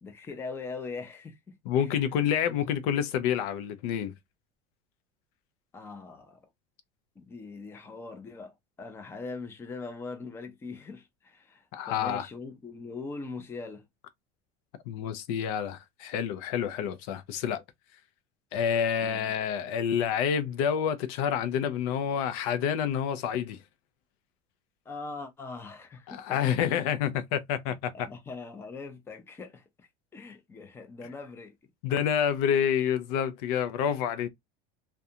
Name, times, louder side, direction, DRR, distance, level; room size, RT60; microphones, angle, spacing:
voice 1, 0.0-2.0 2.5-2.6 5.7-6.4 7.2-13.8 19.0-19.3 24.9-26.4 27.9-29.6 30.1-31.6, left 4 dB, 15° left, 0.5 m, -41 dB
voice 2, 1.7-4.1 11.7-12.3 14.9-17.6 18.5-23.6 26.1-28.1 31.8-34.3, left 8 dB, 70° left, 0.5 m, -28 dB
2.4 x 2.2 x 2.7 m
cardioid pair, 155°, 19 cm